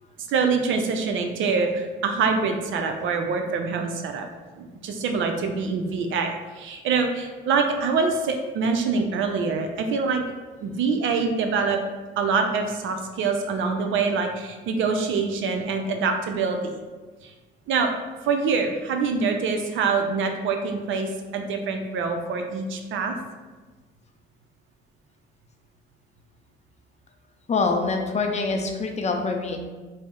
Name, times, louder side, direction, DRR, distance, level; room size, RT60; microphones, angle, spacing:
voice 1, 0.3-4.3 4.6-10.2 10.6-11.8 12.2-16.7 17.2-17.3 17.7-17.9 18.2-23.2, right 4 dB, 80° right, 4 dB, 0.5 m, -25 dB
voice 2, 27.5-29.6, left 4 dB, 35° left, 3 dB, 0.5 m, -25 dB
4.0 x 2.1 x 3.6 m, 1.3 s
cardioid pair, 90°, 20 cm